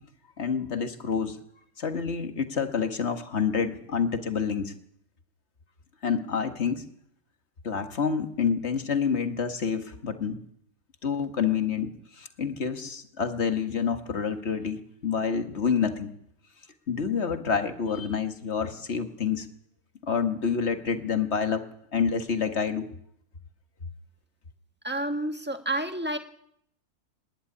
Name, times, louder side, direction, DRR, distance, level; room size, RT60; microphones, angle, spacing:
voice 1, 0.4-1.4 1.8-4.7 6.0-6.8 7.6-10.4 11.0-16.1 16.9-19.5 20.0-21.6 21.9-22.9, left 6 dB, 45° left, 8 dB, 1.9 m, -28 dB
voice 2, 24.8-26.2, right 1 dB, 5° right, 6 dB, 1.6 m, -29 dB
25.5 x 11.5 x 10.0 m, 0.70 s
omnidirectional pair, 1.6 m